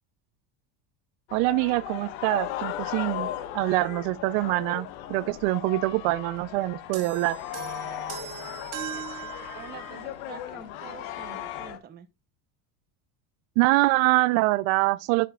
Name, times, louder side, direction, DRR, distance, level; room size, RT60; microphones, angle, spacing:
sound 1, 1.3-11.8, left 12 dB, 80° left, 1.2 m, -37 dB
voice 1, 1.3-7.4 13.6-15.3, right 20 dB, 75° right, 0.5 m, -25 dB
sound 2, 6.9-10.1, right 7 dB, 40° right, 1.2 m, -39 dB
voice 2, 9.6-12.1, right 9 dB, 25° right, 0.7 m, -46 dB
9.0 x 6.1 x 2.3 m
cardioid pair, 170°, 41 cm